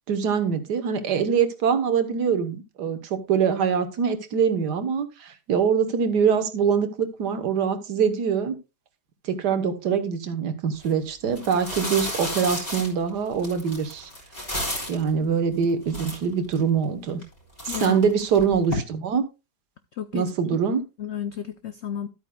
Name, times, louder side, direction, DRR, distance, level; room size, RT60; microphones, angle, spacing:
voice 1, 0.1-8.6 9.2-14.1 14.9-17.2 17.6-19.3 20.1-20.8, right 6 dB, 70° right, 1.7 m, -24 dB
sound 1, 10.7-10.9 11.3-15.1 15.6-15.7 15.9-16.6 17.1-17.3 17.6-18.8, left 1 dB, 25° left, 3.9 m, -32 dB
voice 2, 17.7-18.0 19.9-20.3 21.0-22.1, left 9 dB, 80° left, 0.6 m, -32 dB
12.5 x 8.5 x 2.3 m
omnidirectional pair, 1.8 m